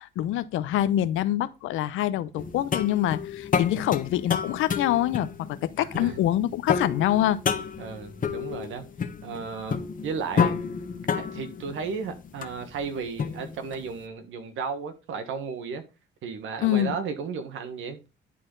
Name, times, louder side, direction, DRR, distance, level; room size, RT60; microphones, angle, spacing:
voice 1, 0.0-7.4 16.6-16.9, left 12 dB, 90° left, 0.7 m, -25 dB
sound 1, 2.4-13.9, left 6 dB, 45° left, 1.1 m, -30 dB
voice 2, 5.8-6.2 7.8-8.8 9.2-10.6 11.1-15.8 16.2-18.1, right 5 dB, 80° right, 1.5 m, -34 dB
11.0 x 4.3 x 3.9 m
cardioid pair, 90°, 20 cm